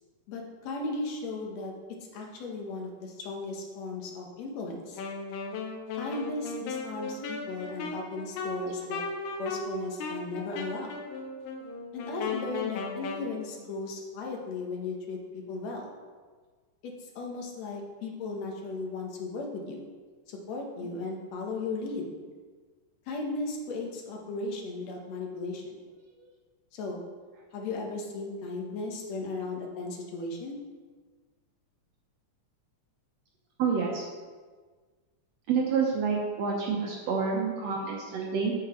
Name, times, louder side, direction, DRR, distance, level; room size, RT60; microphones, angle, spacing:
voice 1, 0.3-1.7 2.1-5.0 5.9-9.0 9.4-10.9 11.9-15.9 16.8-19.8 20.3-22.1 23.1-25.7 26.7-27.0 27.5-30.6, left 3 dB, 65° left, 1 dB, 2.0 m, -36 dB
Wind instrument woodwind instrument, 5.0-13.3, left 3 dB, 85° left, 2.5 m, -36 dB
voice 2, 33.6-34.0 35.5-38.5, right 5 dB, 75° right, -1 dB, 1.5 m, -28 dB
8.0 x 5.8 x 4.3 m, 1.5 s
omnidirectional pair, 3.8 m